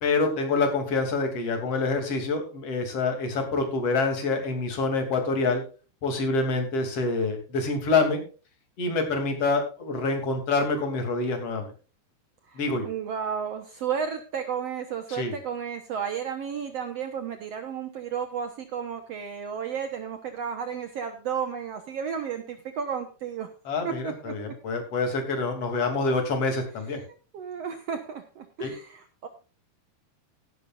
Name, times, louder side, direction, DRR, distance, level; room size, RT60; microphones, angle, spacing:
voice 1, 0.0-5.6 6.0-8.2 8.8-11.7 12.6-12.9 15.1-15.4 23.7-27.0 28.6-28.7, left 3 dB, 40° left, 4 dB, 3.6 m, -26 dB
voice 2, 12.5-23.5 23.8-24.5 27.3-29.3, right 7 dB, 85° right, 7 dB, 1.4 m, -33 dB
16.0 x 12.0 x 2.5 m, 0.34 s
omnidirectional pair, 4.6 m